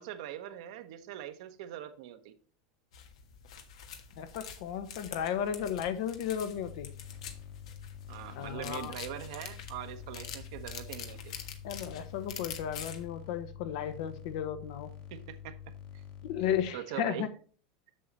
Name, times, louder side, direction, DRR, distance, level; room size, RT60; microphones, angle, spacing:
voice 1, 0.0-2.3 8.1-11.3 15.1-16.0 16.7-17.3, right 11 dB, 70° right, 1.1 m, -42 dB
sound 1, 2.9-13.1, left 7 dB, 85° left, 1.4 m, -46 dB
voice 2, 4.2-6.9 8.4-8.9 11.6-14.9 16.2-17.3, left 9 dB, 65° left, 1.0 m, -34 dB
sound 2, 6.5-16.7, left 9 dB, 45° left, 1.4 m, -47 dB
7.6 x 6.6 x 4.1 m
supercardioid pair, 135°, 3 cm